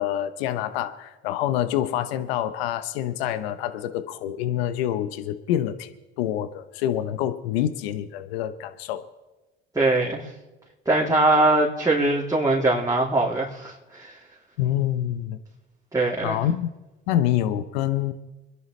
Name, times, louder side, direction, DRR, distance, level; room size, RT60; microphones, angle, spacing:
voice 1, 0.0-9.1 14.6-15.4 16.2-16.7 17.1-18.1, left 11 dB, 85° left, 11 dB, 0.9 m, -26 dB
voice 2, 9.7-10.3 10.9-14.2 15.9-16.4, right 2 dB, 10° right, -5 dB, 3.1 m, -22 dB
26.0 x 11.0 x 3.3 m, 1.1 s
hypercardioid pair, 70°, 30 cm